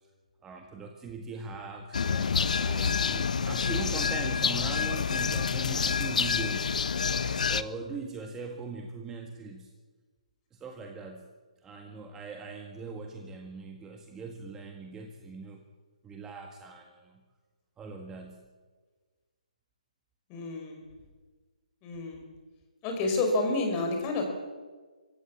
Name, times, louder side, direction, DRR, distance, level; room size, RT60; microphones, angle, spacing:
voice 1, 0.4-6.7 7.5-9.7 10.5-11.3 11.6-15.6 16.0-17.2 17.8-18.5, right 4 dB, 10° right, 2 dB, 1.7 m, -41 dB
sound 1, 1.9-7.6, left 6 dB, 65° left, 1.1 m, -28 dB
voice 2, 20.3-20.8 21.8-22.2 22.8-24.2, left 2 dB, 25° left, 3 dB, 5.6 m, -29 dB
25.0 x 14.5 x 8.7 m, 1.4 s
hypercardioid pair, 150°, 4 cm